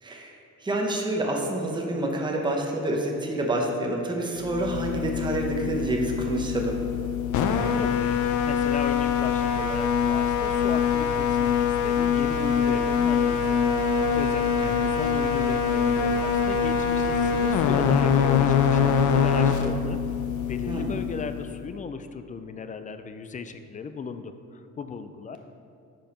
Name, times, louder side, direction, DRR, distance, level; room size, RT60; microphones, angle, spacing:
voice 1, 0.0-6.8 14.6-14.7 20.7-21.0, right 1 dB, 15° right, 0 dB, 0.8 m, -28 dB
sound 1, 4.4-21.6, left 7 dB, 80° left, 0.5 m, -24 dB
voice 2, 7.8-8.2 8.4-13.6 14.1-14.5 14.9-20.0 20.5-25.4, left 5 dB, 25° left, 9 dB, 0.3 m, -36 dB
5.2 x 4.4 x 5.1 m, 2.4 s
cardioid pair, 90°, 30 cm